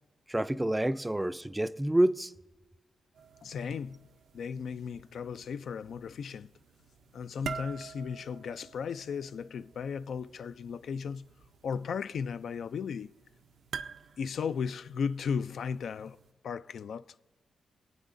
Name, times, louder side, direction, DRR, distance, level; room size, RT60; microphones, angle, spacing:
voice 1, 0.3-2.3, right 1 dB, 10° right, 0.3 m, -28 dB
sound 1, 3.1-16.3, right 6 dB, 80° right, 0.5 m, -48 dB
voice 2, 3.4-4.1 4.3-6.5 7.1-11.3 11.6-13.1 14.2-16.2 16.4-17.0, left 6 dB, 75° left, 0.3 m, -35 dB
26.0 x 8.9 x 2.6 m
cardioid pair, 100°, 0 cm